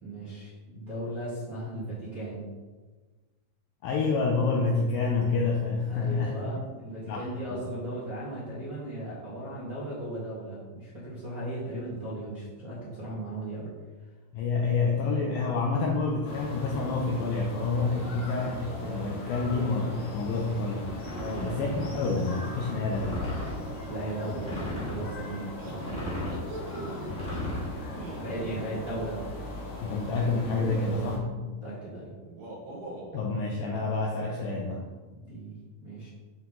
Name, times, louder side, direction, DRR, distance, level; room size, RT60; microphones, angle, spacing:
voice 1, 0.0-2.5 5.9-13.7 14.5-14.9 21.2-21.6 23.9-26.2 26.7-27.1 28.2-29.2 31.2-32.1 35.1-36.1, right 1 dB, 55° right, -10 dB, 1.0 m, -37 dB
voice 2, 3.8-6.4 7.1-7.6 14.3-20.9 21.4-23.3 29.8-31.3 33.1-34.9, left 4 dB, 85° left, 0 dB, 2.1 m, -28 dB
sound 1, 14.9-15.2 15.6-16.1 17.8-19.1 21.2-22.5 24.0-24.4 25.6-27.1 27.8-28.7 30.1-31.2 32.2-33.2, right 2 dB, 80° right, 1.5 m, -43 dB
sound 2, 16.2-31.2, left 1 dB, 60° left, 2.4 m, -40 dB
sound 3, 21.0-22.2 22.9-23.6 24.3-25.1 25.7-26.5 27.0-27.7, left 1 dB, 25° left, 1.7 m, -35 dB
8.2 x 5.7 x 3.7 m, 1.3 s
omnidirectional pair, 5.0 m